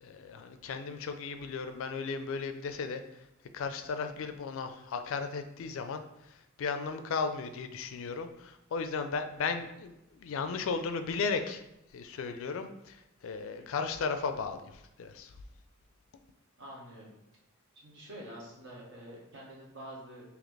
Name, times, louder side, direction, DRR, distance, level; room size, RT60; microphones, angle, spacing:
voice 1, 0.0-3.3 3.5-15.4, left 5 dB, 65° left, 8 dB, 0.4 m, -36 dB
voice 2, 16.6-17.1 17.8-20.2, right 1 dB, 60° right, -3 dB, 1.2 m, -47 dB
4.0 x 2.8 x 3.2 m, 0.90 s
head